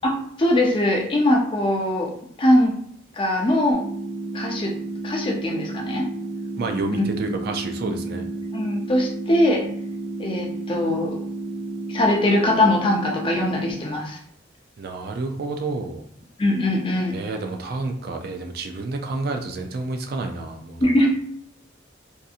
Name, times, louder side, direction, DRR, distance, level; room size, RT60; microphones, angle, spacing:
voice 1, 0.4-2.1 2.4-2.7 3.2-3.8 4.3-4.7 5.0-6.1 6.9-7.0 8.5-9.7 10.2-11.1 11.9-14.2 16.4-17.2 20.8-21.1, left 1 dB, 25° left, 0 dB, 0.5 m, -21 dB
sound 1, 3.7-13.7, right 2 dB, ahead, 0.9 m, -32 dB
voice 2, 6.6-8.3 14.8-16.0 17.1-20.9, right 3 dB, 50° right, 4 dB, 0.3 m, -29 dB
2.6 x 2.6 x 2.4 m, 0.64 s
head